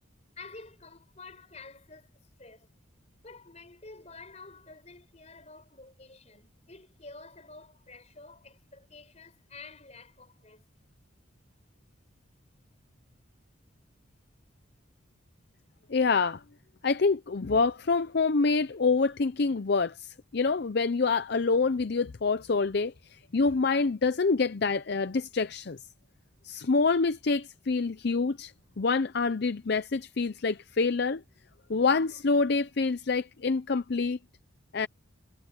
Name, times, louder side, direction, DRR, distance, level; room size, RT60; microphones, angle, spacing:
voice 1, 0.4-2.7 3.2-10.6, left 3 dB, 35° left, 4.6 m, -49 dB
voice 2, 15.9-16.4 16.8-25.8 26.4-31.2 31.7-34.2 34.7-34.9, left 4 dB, 55° left, 0.5 m, -26 dB
head